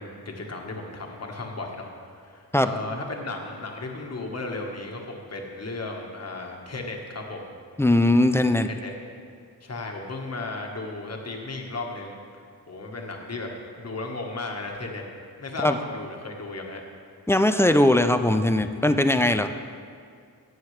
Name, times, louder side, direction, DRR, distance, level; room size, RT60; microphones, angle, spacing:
voice 1, 0.0-7.5 8.6-8.9 9.6-12.2 12.7-15.0 15.4-16.8, left 3 dB, 40° left, 1 dB, 1.4 m, -35 dB
voice 2, 7.8-8.7 15.6-15.7 17.3-19.5, left 1 dB, 5° left, 8 dB, 0.4 m, -20 dB
14.5 x 8.8 x 3.3 m, 2.2 s
wide cardioid pair, 105°, 37 cm